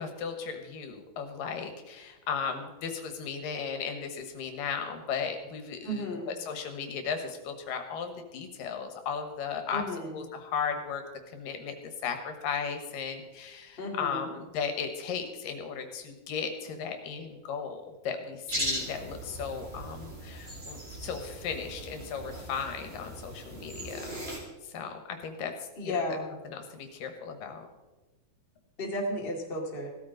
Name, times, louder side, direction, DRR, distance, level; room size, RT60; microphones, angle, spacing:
voice 1, 0.0-9.8 10.1-11.1 11.3-11.8 12.0-24.2 24.6-25.5 25.8-26.0 26.5-27.7, left 6 dB, 80° left, 6 dB, 2.9 m, -36 dB
voice 2, 5.8-6.3 9.7-10.2 13.8-14.3 25.8-26.3 28.8-29.9, left 1 dB, 20° left, -1 dB, 1.9 m, -33 dB
sound 1, 18.5-24.4, right 1 dB, 20° right, 2.4 m, -38 dB
16.5 x 13.0 x 3.9 m, 1.1 s
omnidirectional pair, 3.9 m